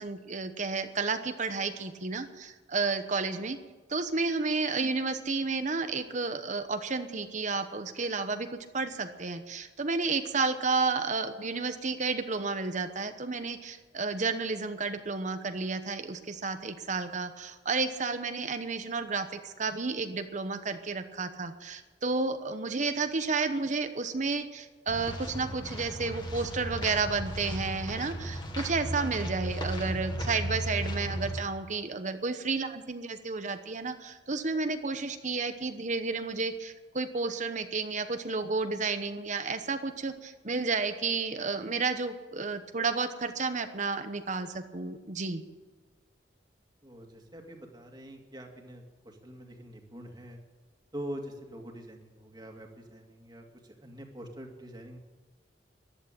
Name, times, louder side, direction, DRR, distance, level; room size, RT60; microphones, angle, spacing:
voice 1, 0.0-3.6 3.9-8.5 8.7-45.4, right 4 dB, 45° right, 9 dB, 1.0 m, -31 dB
sound 1, 24.9-31.4, right 1 dB, 25° left, 1.9 m, -35 dB
voice 2, 46.8-50.4 50.9-55.0, equal, 25° right, 2 dB, 2.3 m, -44 dB
14.5 x 11.0 x 8.8 m, 1.4 s
head